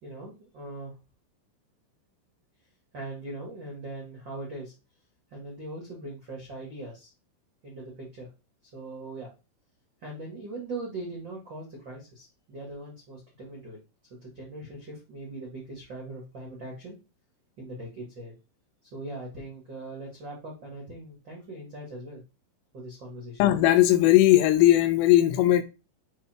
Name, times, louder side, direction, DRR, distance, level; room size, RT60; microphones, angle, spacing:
voice 1, 0.0-0.9 2.9-4.7 5.3-7.1 7.6-8.3 8.7-9.3 10.0-13.8 14.1-17.0 17.6-18.3 18.9-22.2 22.7-23.4, right 2 dB, 80° right, 1.0 m, -40 dB
voice 2, 23.4-25.6, left 14 dB, 85° left, 3.3 m, -18 dB
8.1 x 3.3 x 4.5 m
omnidirectional pair, 5.8 m